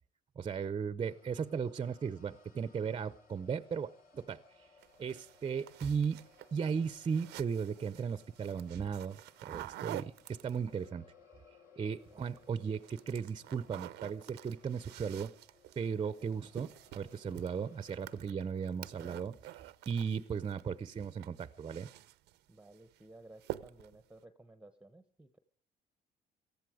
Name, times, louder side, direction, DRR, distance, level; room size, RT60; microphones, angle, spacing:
voice 1, 0.4-4.4 5.0-6.2 6.5-11.0 11.8-15.3 15.8-19.4 19.6-21.9, right 6 dB, 30° right, 15 dB, 0.7 m, -36 dB
sound 1, 1.0-19.3, left 5 dB, 55° left, 3.3 m, -64 dB
sound 2, 4.8-10.9 12.0-12.4 12.7-20.6 20.9-22.4 22.7-23.0 23.4-24.0, right 16 dB, 85° right, 0.7 m, -49 dB
voice 2, 12.1-12.8 22.5-25.4, right 2 dB, 5° right, 10 dB, 1.0 m, -57 dB
18.5 x 14.0 x 5.0 m, 0.44 s
cardioid pair, 110°, 17 cm